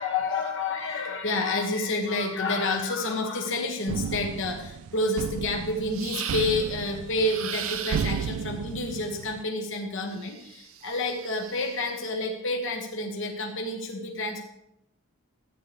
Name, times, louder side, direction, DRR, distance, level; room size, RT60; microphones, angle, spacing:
voice 1, 0.0-14.4, left 2 dB, 60° left, 2 dB, 1.2 m, -29 dB
sound 1, 3.9-9.4, right 7 dB, 85° right, 0.3 m, -34 dB
sound 2, 5.9-6.8 7.2-8.4 10.1-12.0, right 9 dB, 70° right, 0.7 m, -37 dB
13.5 x 9.5 x 3.4 m, 0.83 s
head